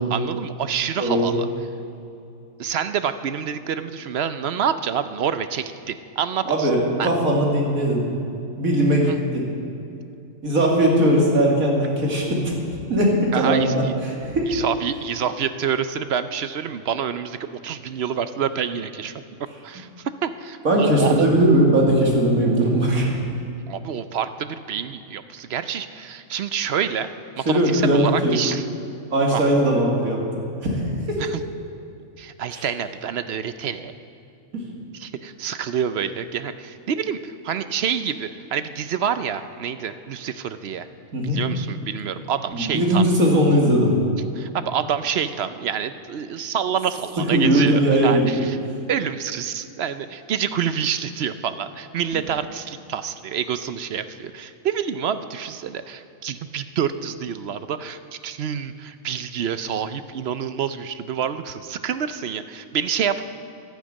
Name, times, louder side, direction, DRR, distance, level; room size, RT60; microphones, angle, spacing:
voice 1, 0.0-1.5 2.6-6.7 7.0-7.1 9.1-9.2 13.3-13.9 14.5-17.4 17.6-19.1 19.6-19.9 20.2-21.3 23.7-27.1 27.4-28.6 29.3-29.5 31.2-31.4 32.2-33.9 34.9-40.9 41.2-43.0 44.3-48.6 48.9-63.2, right 8 dB, 60° right, 12 dB, 0.8 m, -27 dB
voice 2, 1.0-1.3 6.4-8.1 8.6-9.5 10.4-12.4 12.9-14.5 20.6-23.1 27.5-28.4 29.1-30.2 30.6-30.8 31.1-31.2 32.5-32.6 41.1-41.4 42.5-43.9 47.2-48.4, right 1 dB, 90° right, -1 dB, 2.8 m, -19 dB
11.5 x 11.5 x 8.7 m, 2.6 s
omnidirectional pair, 1.4 m